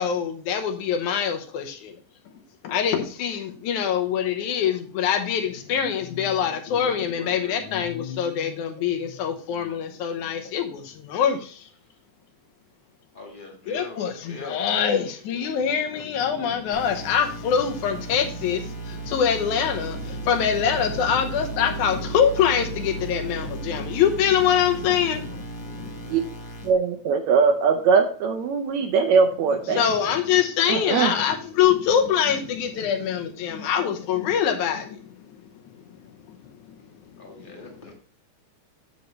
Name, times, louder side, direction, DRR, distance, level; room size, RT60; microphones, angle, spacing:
voice 1, 0.0-1.9 2.6-11.6 13.7-26.0 29.7-35.1, left 8 dB, 75° left, 6 dB, 2.4 m, -24 dB
voice 2, 7.2-7.6 13.1-14.8 15.5-15.6 15.9-16.0 37.2-37.9, left 2 dB, 25° left, 0 dB, 1.1 m, -43 dB
sound 1, 16.7-26.7, right 4 dB, 50° left, 1.1 m, -35 dB
voice 3, 26.7-29.8 30.7-31.1, right 5 dB, 75° right, 3 dB, 1.9 m, -21 dB
8.0 x 7.1 x 3.1 m, 0.42 s
omnidirectional pair, 3.5 m